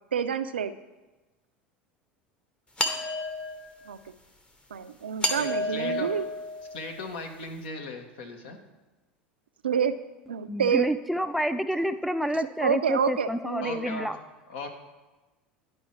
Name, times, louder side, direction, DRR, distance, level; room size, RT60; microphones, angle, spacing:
voice 1, 0.1-0.7 3.9-4.0 4.7-6.3 9.6-9.9 10.3-10.9 12.6-13.9, right 7 dB, 80° right, 12 dB, 0.4 m, -27 dB
sound 1, 2.8-3.9 5.2-7.1, left 2 dB, 15° left, 1.0 m, -31 dB
voice 2, 5.3-6.1 6.7-8.6 13.6-14.1 14.5-14.7, left 3 dB, 65° left, 4 dB, 1.1 m, -38 dB
voice 3, 10.5-14.2, equal, ahead, 11 dB, 0.3 m, -29 dB
11.0 x 4.6 x 3.1 m, 1.1 s
figure-of-eight pair, 75°, 6 cm